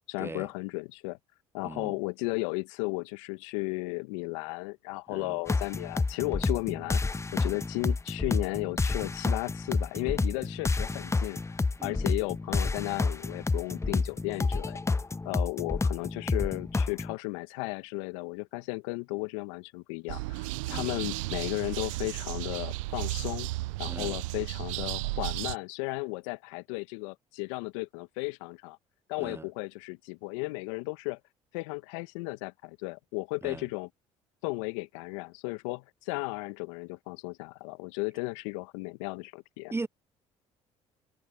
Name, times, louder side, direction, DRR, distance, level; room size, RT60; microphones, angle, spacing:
voice 1, 0.1-1.2 1.5-11.4 11.8-15.0 15.2-23.5 23.8-28.8 29.1-31.2 31.5-33.9 34.4-39.7, left 27 dB, 80° left, 1.2 m, -35 dB
voice 2, 1.6-1.9 5.1-5.4 7.4-7.6 11.8-12.1 20.7-21.0 23.9-24.2 29.2-29.4 33.4-33.6 39.7-39.9, right 3 dB, 15° right, 0.5 m, -39 dB
sound 1, 5.5-17.1, left 3 dB, 15° left, 0.8 m, -29 dB
sound 2, 20.1-25.6, right 21 dB, 80° right, 0.7 m, -34 dB
hypercardioid pair, 55°, 16 cm